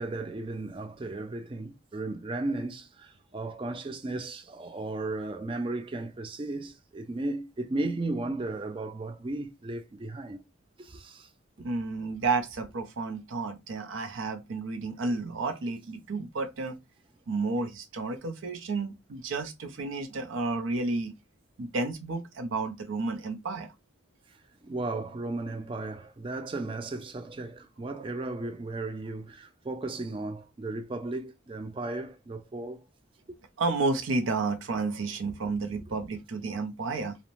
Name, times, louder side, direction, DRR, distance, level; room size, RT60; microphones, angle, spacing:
voice 1, 0.0-10.4 10.8-11.3 24.6-32.8, right 2 dB, 25° right, 0.3 m, -35 dB
voice 2, 11.6-16.8 17.3-21.1 21.6-23.7 27.8-28.1 33.6-37.2, right 3 dB, 85° right, 0.5 m, -31 dB
2.5 x 2.0 x 3.0 m
head